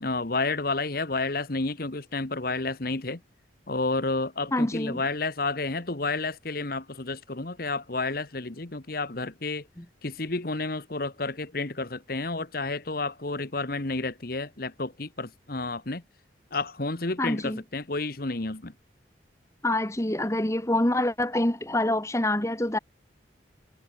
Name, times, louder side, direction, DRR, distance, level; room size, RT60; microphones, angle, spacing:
voice 1, 0.0-3.2 3.7-9.6 10.0-16.0 16.5-18.7, left 3 dB, 50° left, 1.4 m, -30 dB
voice 2, 4.5-5.0 9.8-9.9 17.2-17.6 19.6-22.8, left 1 dB, 15° left, 1.5 m, -26 dB
head